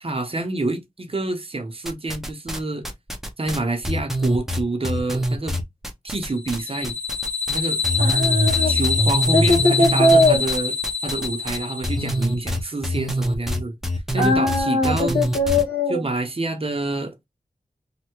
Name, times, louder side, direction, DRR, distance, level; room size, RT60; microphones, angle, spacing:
voice 1, 0.0-2.8 3.4-5.6 6.0-7.0 7.5-7.8 8.6-10.7 11.0-15.2 15.9-17.2, right 2 dB, 40° right, 0.7 m, -27 dB
sound 1, 1.9-2.6 2.8-6.6 6.8-7.6 7.8-15.6, equal, 5° right, 0.6 m, -24 dB
sound 2, 6.4-12.3, left 5 dB, 45° left, 0.6 m, -25 dB
voice 2, 8.0-8.7 9.3-10.4 14.2-16.0, left 1 dB, 70° left, 1.4 m, -20 dB
3.3 x 2.2 x 2.9 m
wide cardioid pair, 85°, 15 cm